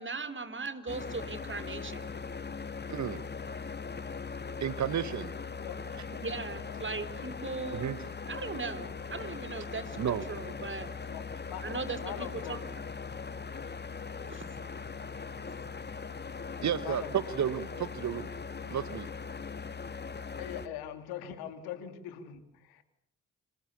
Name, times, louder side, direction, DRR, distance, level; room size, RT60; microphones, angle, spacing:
voice 1, 0.0-2.2 6.1-7.9 8.3-10.9 11.6-12.7 13.7-13.8 14.2-14.5, right 4 dB, 30° right, 10 dB, 3.8 m, -39 dB
sound 1, 0.9-20.7, left 5 dB, 25° left, 2.0 m, -40 dB
voice 2, 2.9-3.2 4.6-5.3 7.7-8.0 10.0-10.2 16.6-18.3 18.7-19.1, right 9 dB, 45° right, 15 dB, 1.4 m, -32 dB
voice 3, 11.1-12.6 16.8-17.3 20.4-22.8, left 10 dB, 70° left, 10 dB, 2.7 m, -42 dB
29.0 x 26.5 x 7.0 m, 0.69 s
figure-of-eight pair, 40°, 38 cm